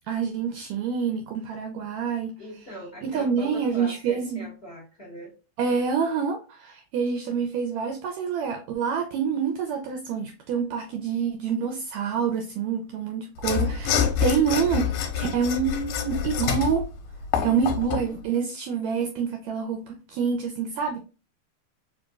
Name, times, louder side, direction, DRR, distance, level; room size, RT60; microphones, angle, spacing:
voice 1, 0.1-2.4 3.0-4.5 5.6-16.9 17.4-21.0, right 6 dB, 80° right, 1.6 m, -27 dB
voice 2, 2.4-5.3 18.3-18.5, equal, 60° left, 0.6 m, -41 dB
Mechanisms / Sawing, 13.4-18.1, left 8 dB, 80° left, 2.0 m, -27 dB
4.9 x 2.5 x 2.3 m
omnidirectional pair, 3.7 m